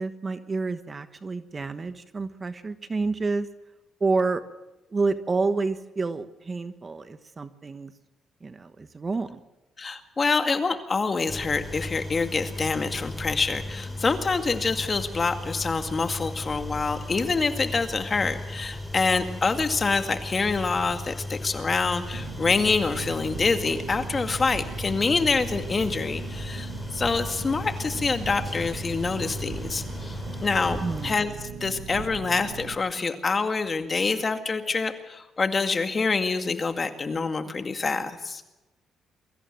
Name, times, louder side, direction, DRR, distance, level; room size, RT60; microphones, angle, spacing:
voice 1, 0.0-3.5 4.0-4.4 4.9-7.9 8.4-9.4 30.8-31.2, right 3 dB, 30° right, 11 dB, 1.2 m, -29 dB
voice 2, 9.8-31.3 31.6-38.4, left 4 dB, 35° left, 7 dB, 2.1 m, -26 dB
sound 1, 11.3-31.2, left 1 dB, 5° left, 4.4 m, -36 dB
Engine, 22.1-32.7, right 6 dB, 90° right, 1.4 m, -39 dB
23.5 x 14.5 x 7.7 m, 1.0 s
cardioid pair, 90°, 0 cm